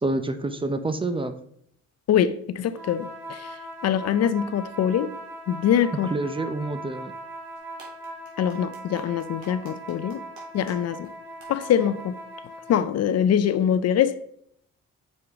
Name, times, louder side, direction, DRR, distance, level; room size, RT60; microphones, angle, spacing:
voice 1, 0.0-1.3 6.1-7.1, right 2 dB, 15° right, 10 dB, 0.5 m, -27 dB
voice 2, 2.1-3.6 3.8-5.1 5.5-6.1 8.4-10.2 10.5-11.1 11.5-12.2 12.7-14.2, left 9 dB, 55° left, 13 dB, 0.5 m, -23 dB
sound 1, 2.7-12.9, right 1 dB, 90° right, 2.7 m, -40 dB
sound 2, 7.5-10.8 11.0-11.1 11.4-11.5, right 2 dB, 70° right, 2.6 m, -49 dB
6.3 x 4.9 x 3.5 m, 0.69 s
cardioid pair, 90°, 30 cm